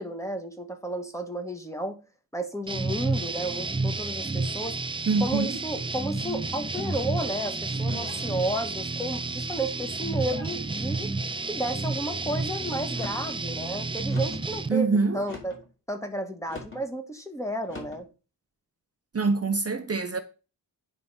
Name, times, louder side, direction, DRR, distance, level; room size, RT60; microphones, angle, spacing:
voice 1, 0.0-2.0 2.3-4.8 5.2-11.1 11.5-15.6 15.9-18.1, right 1 dB, 5° left, 1.4 m, -32 dB
sound 1, 2.7-14.7, right 3 dB, 15° right, 0.4 m, -31 dB
voice 2, 5.1-5.5 14.7-15.2 19.1-20.2, right 4 dB, 35° right, 0.9 m, -24 dB
sound 2, 6.7-7.2 7.9-8.3 9.0-9.5 10.2-10.6 11.3-11.7 12.8-13.3 14.1-14.5 15.2-15.7 16.5-16.8 17.6-18.0, left 3 dB, 30° left, 2.8 m, -43 dB
9.5 x 3.8 x 5.5 m
wide cardioid pair, 90°, 41 cm